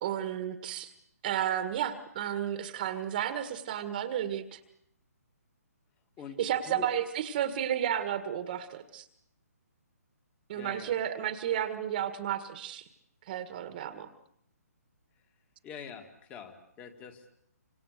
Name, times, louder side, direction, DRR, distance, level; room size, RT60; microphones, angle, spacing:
voice 1, 0.0-0.9 1.2-4.6 6.4-9.1 10.5-12.9 13.3-14.1, right 10 dB, 35° right, 11 dB, 1.7 m, -32 dB
voice 2, 6.2-6.9 10.5-11.0 15.6-17.3, left 6 dB, 15° left, 8 dB, 2.1 m, -45 dB
28.0 x 26.0 x 6.7 m, 0.70 s
hypercardioid pair, 160°, 9 cm